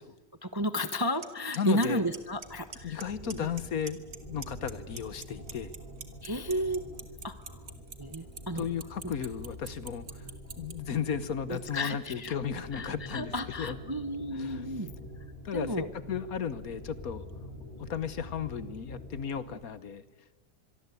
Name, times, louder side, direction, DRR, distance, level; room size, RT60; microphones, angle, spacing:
voice 1, 0.4-3.5 6.2-6.8 7.2-7.6 8.0-8.7 9.0-9.1 11.5-12.3 12.7-14.9 15.5-15.9, equal, 20° right, 11 dB, 0.7 m, -33 dB
Clock, 0.9-1.0 1.2-1.6 1.8-2.5 2.7-3.0 3.3-4.2 4.4-10.7, right 5 dB, 45° right, 2.2 m, -41 dB
voice 2, 1.6-2.1 2.8-5.7 8.6-10.1 10.6-13.3 13.6-13.7 14.4-14.6 15.4-15.7 16.1-17.3 17.8-20.0, left 7 dB, 60° left, 14 dB, 1.4 m, -34 dB
sound 1, 2.1-19.6, equal, 25° left, 7.7 m, -46 dB
25.0 x 23.0 x 8.4 m, 1.2 s
omnidirectional pair, 1.9 m